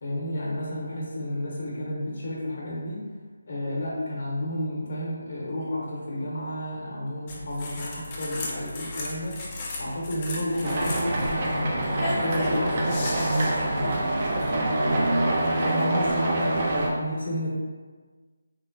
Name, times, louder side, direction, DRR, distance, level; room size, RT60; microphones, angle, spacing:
voice 1, 0.0-3.0 3.5-9.4 9.8-15.1 15.5-17.5, left 1 dB, 55° left, -5 dB, 0.9 m, -31 dB
sound 1, 7.3-14.5, left 2 dB, 25° left, 0.4 m, -36 dB
sound 2, 10.6-16.9, right 1 dB, 40° right, 0.4 m, -25 dB
3.0 x 2.1 x 2.5 m, 1.4 s
figure-of-eight pair, 160°, 0 cm